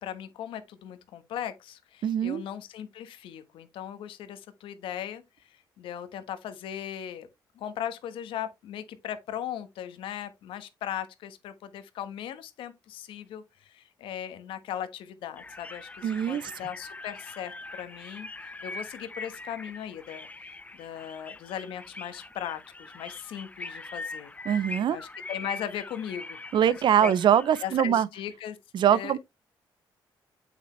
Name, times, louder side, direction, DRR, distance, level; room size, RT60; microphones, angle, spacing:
voice 1, 0.0-5.2 5.8-7.3 7.5-24.3 24.9-26.7 27.0-27.1 27.6-28.6 28.9-29.2, left 10 dB, 85° left, 1.2 m, -38 dB
voice 2, 2.0-2.4 16.0-16.5 24.5-25.0 26.5-28.1 28.7-29.2, right 9 dB, 65° right, 0.6 m, -23 dB
sound 1, 15.4-27.8, left 2 dB, 15° left, 0.7 m, -42 dB
8.0 x 6.2 x 3.2 m
cardioid pair, 80°, 9 cm